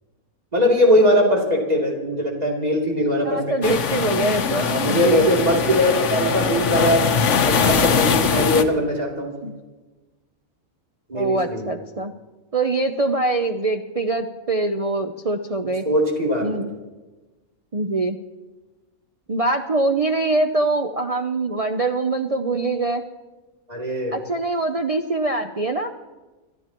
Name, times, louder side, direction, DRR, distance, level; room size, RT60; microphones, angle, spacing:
voice 1, 0.5-3.7 4.5-7.0 7.4-9.3 11.1-11.6 15.8-16.4 23.7-24.1, equal, 25° right, -2 dB, 3.2 m, -20 dB
voice 2, 3.2-5.3 9.4-9.5 11.1-12.1 12.5-15.8 16.4-16.7 17.7-18.2 19.3-23.0 24.1-25.9, right 2 dB, 55° right, 4 dB, 0.4 m, -23 dB
sound 1, 3.6-8.6, left 6 dB, 60° left, 1.1 m, -21 dB
28.0 x 13.0 x 3.0 m, 1.2 s
omnidirectional pair, 1.5 m